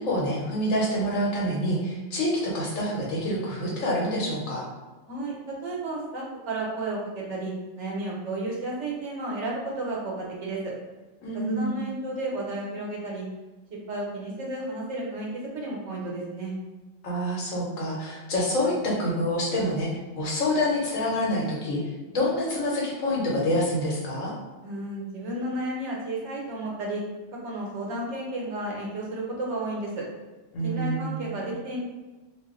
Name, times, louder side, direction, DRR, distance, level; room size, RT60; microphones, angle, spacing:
voice 1, 0.0-4.6 11.2-11.8 17.0-19.9 20.2-21.8 22.1-24.3 30.5-31.2, equal, 85° left, -3 dB, 1.3 m, -27 dB
voice 2, 5.1-10.7 11.3-13.2 13.9-16.5 24.6-27.0 27.3-30.0 30.6-31.8, right 2 dB, 65° right, -3 dB, 1.1 m, -32 dB
2.6 x 2.4 x 3.6 m, 1.2 s
omnidirectional pair, 1.3 m